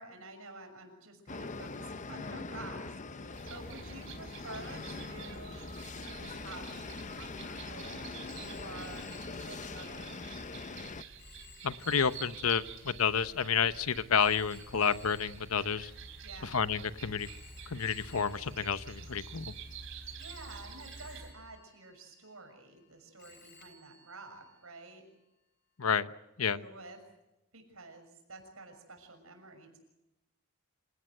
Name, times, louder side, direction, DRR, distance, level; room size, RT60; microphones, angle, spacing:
voice 1, 0.0-5.7 6.0-9.1 9.3-10.4 16.2-16.6 20.2-25.0 26.4-27.0 27.5-29.8, right 3 dB, 80° right, 5 dB, 6.5 m, -50 dB
sound 1, 1.3-11.0, left 3 dB, 35° left, 0.8 m, -43 dB
sound 2, 3.3-21.3, right 5 dB, 65° right, 4.2 m, -48 dB
Telephone, 8.3-16.6 17.2-19.7 20.2-22.9 23.2-24.9, left 3 dB, 50° left, 2.8 m, -60 dB
voice 2, 11.6-15.9 16.4-17.3 17.7-19.5 25.8-26.1 26.4-26.6, left 6 dB, 90° left, 13 dB, 1.0 m, -30 dB
27.0 x 18.0 x 8.0 m, 0.95 s
head